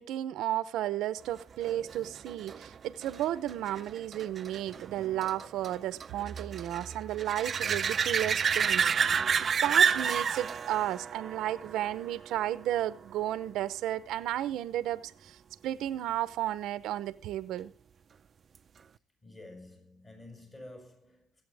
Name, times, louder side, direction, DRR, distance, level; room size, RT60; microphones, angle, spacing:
voice 1, 0.0-15.4 15.6-17.7, right 12 dB, 85° right, 0.7 m, -33 dB
sound 1, 1.6-12.9 18.6-18.7, right 6 dB, 40° right, 0.5 m, -31 dB
voice 2, 1.8-2.2 19.2-21.4, left 2 dB, 25° left, 6.1 m, -51 dB
22.5 x 8.6 x 3.4 m
cardioid pair, 115°, 0 cm